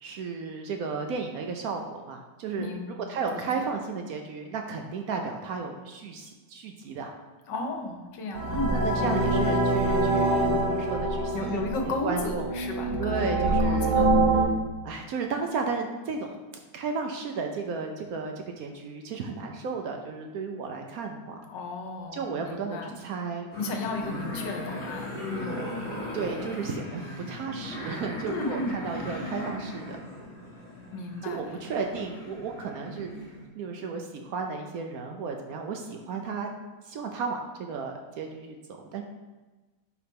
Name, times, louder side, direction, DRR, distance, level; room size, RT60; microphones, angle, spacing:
voice 1, 0.0-2.7 3.1-7.1 8.7-12.5 13.0-14.1 14.8-16.4 16.7-21.4 22.1-23.5 26.1-30.0 31.2-36.5 36.8-39.0, right 5 dB, 70° right, 3 dB, 0.9 m, -34 dB
voice 2, 2.6-2.9 3.3-3.7 7.5-8.7 11.3-14.2 21.5-23.0 23.6-25.1 28.2-28.8 30.9-31.4, left 2 dB, 85° left, 3 dB, 1.6 m, -34 dB
sound 1, 8.3-14.4, right 2 dB, 90° right, 2.3 m, -25 dB
sound 2, 23.5-33.5, left 1 dB, 50° left, 2.0 m, -37 dB
4.7 x 4.3 x 5.2 m, 1.2 s
omnidirectional pair, 1.9 m